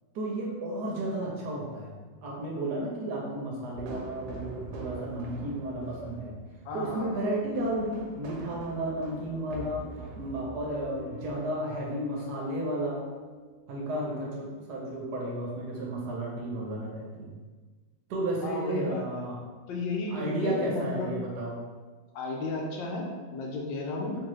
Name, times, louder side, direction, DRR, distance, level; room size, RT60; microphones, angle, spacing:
voice 1, 0.1-1.9 2.2-6.3 6.7-9.9 10.2-13.0 13.7-17.3 18.1-19.4 20.1-21.6, right 1 dB, 70° right, -2 dB, 1.1 m, -33 dB
sound 1, 3.7-11.6, right 3 dB, 85° right, 1.3 m, -44 dB
voice 2, 6.6-7.3 18.4-19.1 19.7-21.1 22.1-24.2, left 2 dB, 80° left, 0 dB, 1.3 m, -33 dB
sound 2, 7.6-14.4, left 2 dB, 60° left, 1.2 m, -50 dB
3.7 x 2.7 x 3.0 m, 1.4 s
omnidirectional pair, 2.0 m